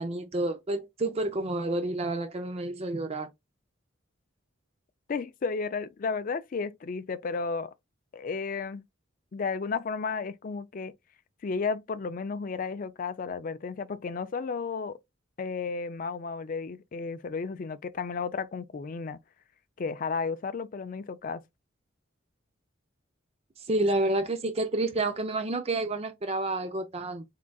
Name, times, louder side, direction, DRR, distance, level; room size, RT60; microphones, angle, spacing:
voice 1, 0.0-3.3 23.7-27.2, right 2 dB, 30° right, 0.5 m, -29 dB
voice 2, 5.1-7.7 8.1-8.8 9.3-10.9 11.4-15.0 15.4-19.2 19.8-21.4, left 4 dB, 45° left, 0.4 m, -33 dB
3.7 x 3.6 x 2.3 m
head